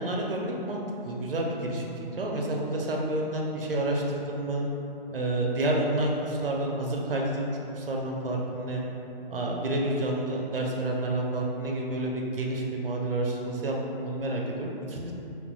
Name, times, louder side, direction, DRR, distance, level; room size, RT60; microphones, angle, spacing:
voice 1, 0.0-4.7 5.1-8.8 9.3-15.1, right 1 dB, 70° right, -1 dB, 0.6 m, -29 dB
3.8 x 2.8 x 2.2 m, 3.0 s
figure-of-eight pair, 130°, 29 cm